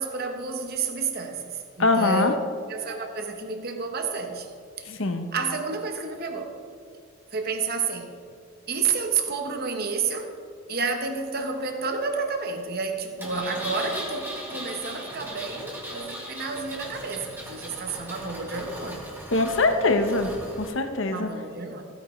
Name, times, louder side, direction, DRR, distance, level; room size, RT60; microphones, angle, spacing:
voice 1, 0.0-2.3 2.7-4.5 4.8-4.9 5.3-6.5 7.3-8.1 8.7-10.3 10.7-19.1 21.1-21.8, right 4 dB, 45° right, 4 dB, 1.0 m, -30 dB
voice 2, 1.8-2.3 4.9-5.2 19.3-20.3 20.6-21.3, left 2 dB, 60° left, 6 dB, 0.9 m, -23 dB
Engine, 13.2-20.7, equal, 10° right, 1.5 m, -38 dB
15.0 x 9.1 x 3.2 m, 2.2 s
head